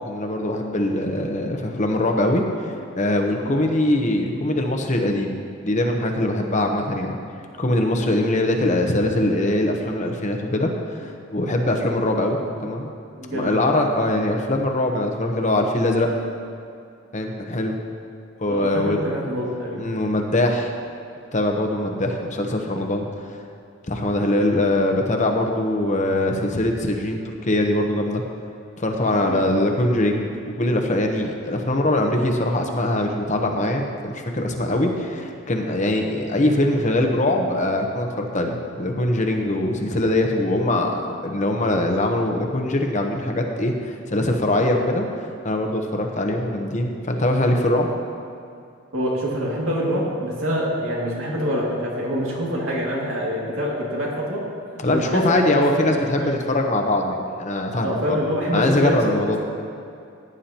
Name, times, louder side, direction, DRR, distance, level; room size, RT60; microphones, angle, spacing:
voice 1, 0.0-5.4 5.6-7.2 7.6-12.9 13.3-16.1 17.1-17.7 18.4-19.2 19.8-20.7 21.3-23.0 23.9-28.2 28.8-47.9 54.8-58.2 58.5-59.4, left 1 dB, 35° left, 3 dB, 0.9 m, -22 dB
voice 2, 13.2-13.7 18.5-19.8 29.3-29.5 48.9-54.4 54.9-55.8 56.2-56.3 57.8-59.4, equal, 75° right, -4 dB, 2.4 m, -25 dB
17.0 x 9.5 x 2.9 m, 2.5 s
head